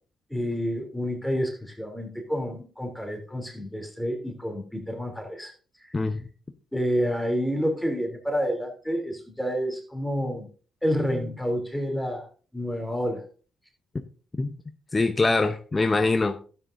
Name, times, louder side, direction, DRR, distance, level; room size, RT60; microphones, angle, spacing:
voice 1, 0.3-5.5 6.7-10.5 10.8-12.3 12.5-13.2, equal, 5° left, 2 dB, 3.1 m, -29 dB
voice 2, 14.9-16.5, left 3 dB, 30° left, 7 dB, 0.8 m, -23 dB
12.0 x 9.4 x 2.7 m, 0.39 s
supercardioid pair, 55°, 0 cm